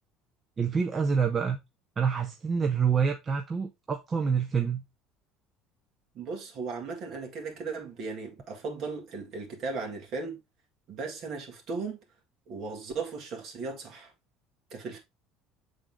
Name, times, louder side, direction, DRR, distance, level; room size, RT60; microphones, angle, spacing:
voice 1, 0.6-1.6 2.0-4.8, right 6 dB, 20° right, 0.5 m, -27 dB
voice 2, 6.1-10.4 10.9-12.0 12.5-14.1 14.7-15.0, right 4 dB, 40° right, 1.9 m, -36 dB
7.5 x 3.8 x 3.5 m
cardioid pair, 175°, 0 cm